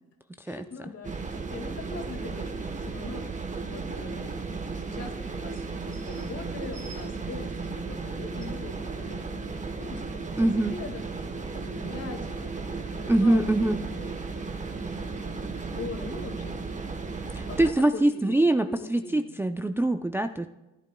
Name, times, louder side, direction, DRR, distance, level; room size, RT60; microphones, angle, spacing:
voice 1, 0.5-3.2 3.7-4.4 4.7-11.0 11.3-14.7 15.0-16.7 17.5-19.4, left 3 dB, 50° left, 3 dB, 2.0 m, -42 dB
sound 1, 1.0-17.7, right 4 dB, 25° right, 1.1 m, -35 dB
voice 2, 10.4-10.7 13.1-13.8 17.4-20.5, right 1 dB, 10° right, 8 dB, 0.4 m, -24 dB
15.5 x 10.5 x 2.3 m, 1.0 s
cardioid pair, 90°, 30 cm